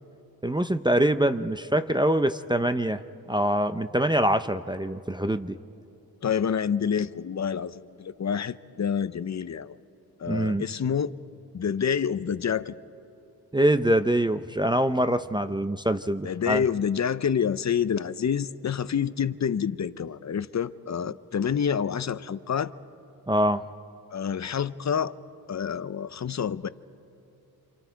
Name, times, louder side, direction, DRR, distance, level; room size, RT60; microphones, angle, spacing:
voice 1, 0.4-3.0 3.3-5.6 10.3-10.7 13.5-16.6 23.3-23.6, right 1 dB, 10° right, 0.6 m, -24 dB
voice 2, 6.2-9.8 10.2-11.1 11.5-12.7 16.2-22.7 24.1-25.1 25.5-26.7, left 7 dB, 45° left, 0.6 m, -28 dB
27.5 x 27.5 x 4.6 m
wide cardioid pair, 95°, 39 cm